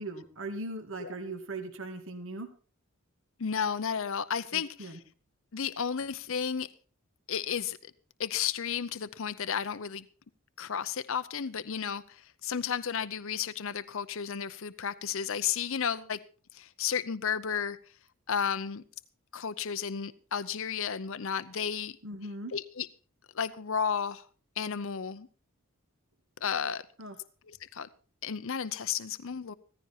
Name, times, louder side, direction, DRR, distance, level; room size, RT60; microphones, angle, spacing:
voice 1, 0.0-2.5 4.5-5.0 22.0-22.5 27.0-27.2, right 2 dB, 60° right, 2.2 m, -39 dB
voice 2, 3.4-5.0 5.5-6.7 7.3-7.9 8.2-10.0 10.6-16.2 16.5-17.8 18.3-18.8 19.3-22.0 22.5-22.9 23.3-24.3 24.6-25.3 26.4-26.8 27.5-27.9 28.2-29.5, left 7 dB, 65° left, 0.7 m, -33 dB
15.5 x 15.0 x 4.4 m
head